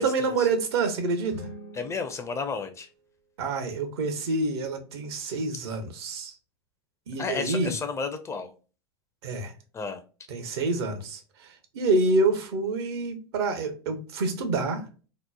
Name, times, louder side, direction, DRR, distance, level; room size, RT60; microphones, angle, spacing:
voice 1, 0.0-1.5 3.4-6.3 7.1-7.7 9.2-9.5 10.3-14.9, right 3 dB, 70° right, 0.7 m, -27 dB
sound 1, 1.3-3.4, left 1 dB, 80° left, 1.0 m, -45 dB
voice 2, 1.7-2.9 7.2-8.5 9.7-10.0, left 5 dB, 20° left, 0.4 m, -32 dB
2.9 x 2.0 x 2.2 m
hypercardioid pair, 95°, 14 cm